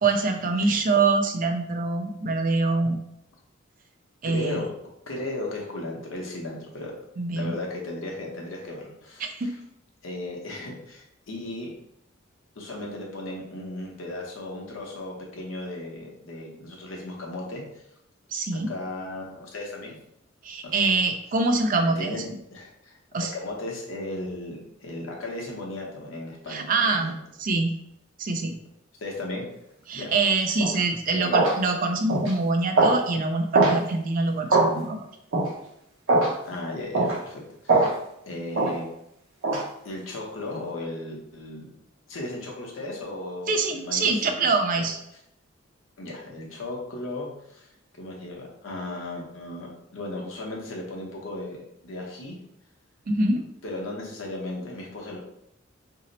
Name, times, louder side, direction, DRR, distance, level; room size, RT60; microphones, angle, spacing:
voice 1, 0.0-3.0 4.2-4.6 7.2-7.5 9.2-9.5 18.3-18.7 20.4-22.2 23.1-23.3 26.5-27.1 27.4-27.7 28.2-28.6 29.9-35.0 43.5-45.0 53.1-53.4, right 3 dB, 40° right, 4 dB, 0.4 m, -24 dB
voice 2, 4.2-4.7 5.1-6.9 7.3-9.5 10.0-11.7 12.6-17.8 18.5-20.0 20.6-20.7 21.8-22.2 22.5-23.0 23.3-27.1 29.0-29.5 29.9-30.1 31.1-31.4 36.4-37.9 38.3-38.9 39.8-41.7 42.1-44.9 46.0-47.7 48.0-52.4 53.6-55.2, left 2 dB, 75° left, -1 dB, 0.8 m, -36 dB
sound 1, 30.6-30.8 31.3-31.6 32.1-32.3 32.8-33.0 33.5-33.8 34.5-34.7 35.3-35.5 36.1-36.3 36.9-37.2 37.7-37.9 38.5-38.7 39.4-39.6, right 3 dB, 80° right, 0.8 m, -20 dB
2.7 x 2.0 x 3.9 m, 0.78 s
head